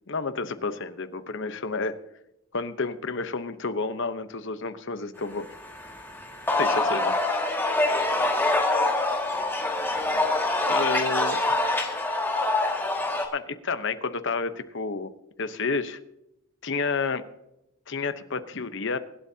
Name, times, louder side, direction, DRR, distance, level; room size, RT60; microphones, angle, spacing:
voice 1, 0.1-2.0 2.5-5.5 6.6-7.2 10.7-11.5 13.3-15.1 15.4-16.0 16.6-17.2 17.9-19.0, left 4 dB, 60° left, 10 dB, 1.0 m, -30 dB
sound 1, 5.5-13.3, left 2 dB, 10° left, 2.0 m, -25 dB
24.5 x 12.0 x 2.8 m, 0.86 s
head